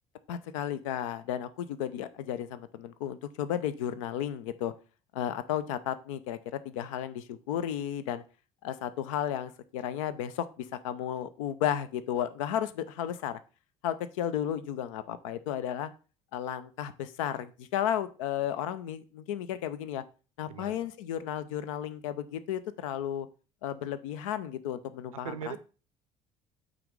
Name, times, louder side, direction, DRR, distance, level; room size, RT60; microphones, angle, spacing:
voice 1, 0.3-4.7 5.1-6.4 6.6-8.2 8.6-13.4 13.8-15.9 16.3-20.0 20.4-23.3 23.6-25.6, left 10 dB, 65° left, 12 dB, 0.6 m, -33 dB
voice 2, 20.5-20.9 25.1-25.6, right 8 dB, 75° right, 14 dB, 0.6 m, -40 dB
5.8 x 4.0 x 5.1 m, 0.35 s
figure-of-eight pair, 55°, 18 cm